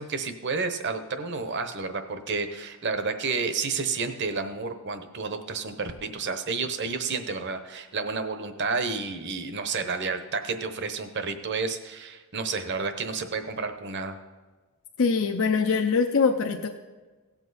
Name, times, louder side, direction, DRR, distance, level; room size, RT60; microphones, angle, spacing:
voice 1, 0.0-14.2, right 4 dB, 55° right, 8 dB, 0.9 m, -30 dB
voice 2, 15.0-16.7, left 5 dB, 70° left, 3 dB, 0.6 m, -23 dB
17.0 x 7.3 x 4.1 m, 1.3 s
head